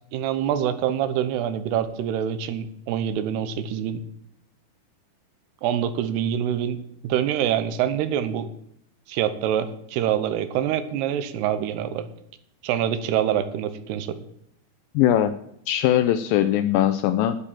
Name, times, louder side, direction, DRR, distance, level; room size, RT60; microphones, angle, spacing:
voice 1, 0.1-4.0 5.6-8.5 9.1-12.1 12.6-14.2, right 10 dB, 90° right, 12 dB, 3.0 m, -25 dB
voice 2, 15.0-15.3 15.7-17.4, left 11 dB, 85° left, 11 dB, 2.0 m, -20 dB
10.0 x 9.0 x 7.3 m, 0.74 s
omnidirectional pair, 4.6 m